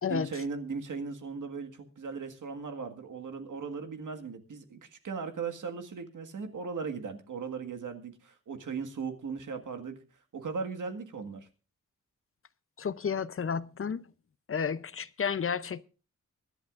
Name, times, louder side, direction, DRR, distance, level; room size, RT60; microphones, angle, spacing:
voice 1, 0.0-10.0 10.3-11.5, right 5 dB, 85° right, 1.8 m, -38 dB
voice 2, 12.8-14.0 14.5-15.8, left 6 dB, 45° left, 0.6 m, -31 dB
24.5 x 11.0 x 2.5 m
wide cardioid pair, 100°, 30 cm